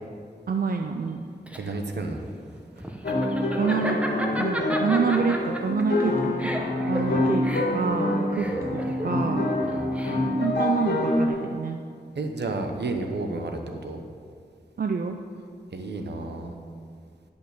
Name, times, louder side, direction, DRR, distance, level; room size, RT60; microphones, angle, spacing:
voice 1, 0.5-1.3 3.6-4.0 4.4-6.6 6.9-7.4 7.7-9.5 10.4-11.8 14.8-15.2, right 5 dB, 60° right, 4 dB, 0.5 m, -27 dB
Laughter, 1.1-10.5, right 1 dB, 5° right, 1.1 m, -34 dB
voice 2, 1.6-2.2 8.4-8.7 9.6-9.9 12.1-14.0 15.7-16.5, right 2 dB, 80° right, 4 dB, 1.0 m, -31 dB
sound 1, 3.0-11.3, left 1 dB, 70° left, 1.8 m, -26 dB
11.0 x 5.4 x 6.7 m, 2.1 s
wide cardioid pair, 75°, 17 cm